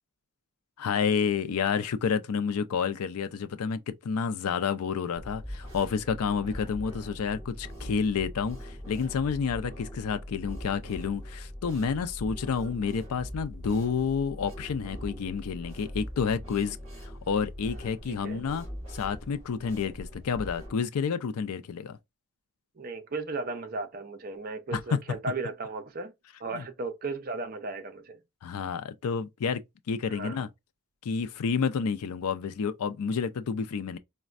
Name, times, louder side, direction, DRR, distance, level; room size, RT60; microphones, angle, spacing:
voice 1, 0.8-16.8 17.0-18.6 18.9-22.0 24.7-24.8 26.5-26.6 28.4-29.6 29.9-30.5 31.0-34.0, left 6 dB, 85° left, 0.4 m, -30 dB
sound 1, 5.1-20.7, equal, 25° right, 2.0 m, -41 dB
voice 2, 18.1-18.5 22.8-26.1 26.4-28.2 30.1-30.5, right 3 dB, 40° right, 0.5 m, -36 dB
4.1 x 2.1 x 2.4 m
head